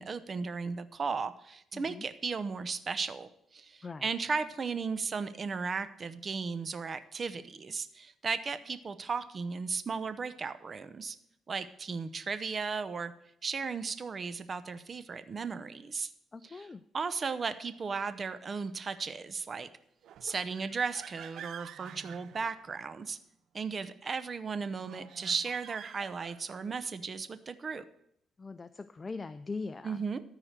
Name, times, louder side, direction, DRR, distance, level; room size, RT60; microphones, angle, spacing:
voice 1, 0.0-11.2 11.5-13.1 13.4-16.1 16.4-16.7 16.9-19.7 20.2-23.2 23.5-27.8 29.8-30.2, right 5 dB, 40° right, 13 dB, 0.7 m, -35 dB
voice 2, 1.7-2.1 3.8-4.1 16.3-16.8 28.4-30.0, left 4 dB, 30° left, 11 dB, 0.4 m, -41 dB
sound 1, 20.0-23.2 24.8-26.8, right 9 dB, 75° right, 0.4 m, -49 dB
13.0 x 4.8 x 6.5 m, 0.73 s
cardioid pair, 90°, 0 cm